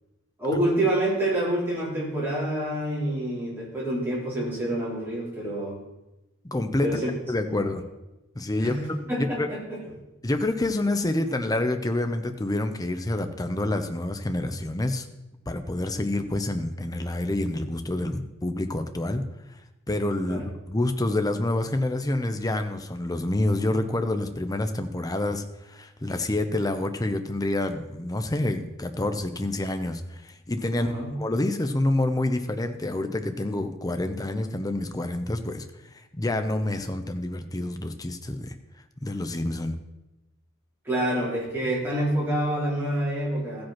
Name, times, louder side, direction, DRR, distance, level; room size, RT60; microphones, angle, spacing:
voice 1, 0.4-5.8 6.8-7.1 7.6-7.8 8.6-9.8 20.3-20.4 30.7-31.1 40.8-43.6, right 1 dB, 10° right, -7 dB, 3.8 m, -27 dB
voice 2, 6.4-6.9 7.3-7.8 8.3-9.5 10.2-15.1 15.5-19.2 19.9-35.7 36.1-38.5 39.0-39.8, left 1 dB, 15° left, 7 dB, 0.7 m, -27 dB
14.5 x 5.3 x 5.8 m, 1.0 s
head